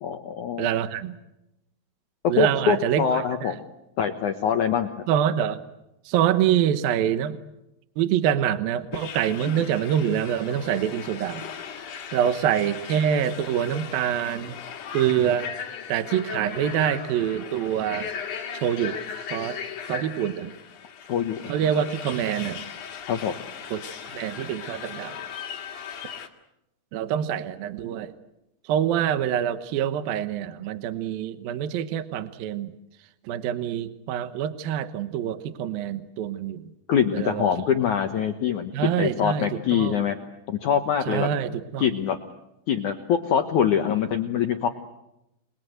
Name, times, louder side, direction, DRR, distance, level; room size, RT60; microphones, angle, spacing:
voice 1, 0.0-0.7 2.4-3.6 4.0-4.9 21.1-21.5 23.1-23.3 36.9-40.2 40.5-41.3 41.8-42.2 42.7-44.7, left 8 dB, 75° left, 6 dB, 1.8 m, -24 dB
voice 2, 0.6-1.2 2.3-3.5 5.1-5.6 6.1-7.4 8.0-11.5 12.1-14.6 14.9-15.5 15.9-18.1 18.5-19.0 19.3-19.6 19.9-20.5 21.5-22.6 23.7-25.2 26.9-28.1 28.7-32.7 33.2-36.7 37.1-37.5 38.7-40.0 41.1-41.9, right 10 dB, 70° right, 11 dB, 2.4 m, -25 dB
sound 1, 8.9-26.3, left 7 dB, 55° left, 2.9 m, -37 dB
29.5 x 21.5 x 7.9 m, 0.89 s
omnidirectional pair, 5.3 m